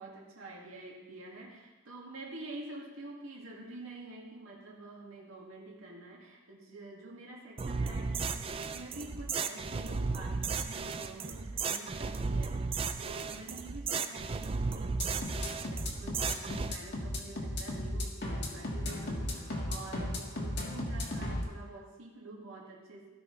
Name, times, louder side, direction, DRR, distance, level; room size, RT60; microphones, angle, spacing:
voice 1, 0.0-23.1, right 2 dB, 70° right, -2 dB, 2.1 m, -48 dB
sound 1, 7.6-16.7, right 4 dB, 25° right, 0.3 m, -35 dB
sound 2, 14.8-21.4, left 1 dB, 50° left, 1.7 m, -35 dB
16.5 x 5.9 x 3.2 m, 1.2 s
head